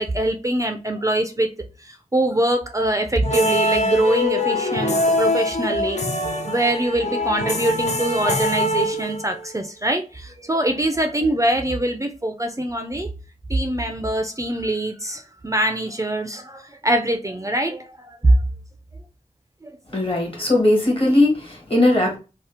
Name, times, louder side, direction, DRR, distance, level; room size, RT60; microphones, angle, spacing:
voice 1, 0.0-1.5 1.8-6.0 6.4-13.1 13.5-18.4 19.6-19.8, right 1 dB, 25° right, 0.4 m, -23 dB
sound 1, 3.2-9.5, left 1 dB, 60° left, 0.6 m, -23 dB
voice 2, 19.9-22.2, left 1 dB, 45° left, 1.4 m, -18 dB
2.8 x 2.0 x 3.3 m
wide cardioid pair, 60°, 13 cm